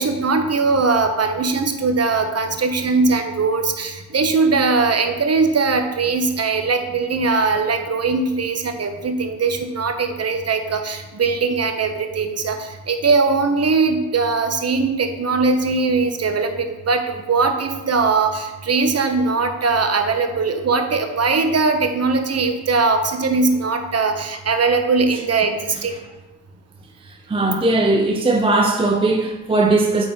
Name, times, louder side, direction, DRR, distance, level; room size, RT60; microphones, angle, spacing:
voice 1, 0.0-26.0, right 4 dB, 35° right, 1.0 m, -20 dB
voice 2, 27.3-30.0, right 2 dB, 10° right, 0.6 m, -18 dB
8.4 x 4.4 x 3.6 m
hypercardioid pair, 60°, 46 cm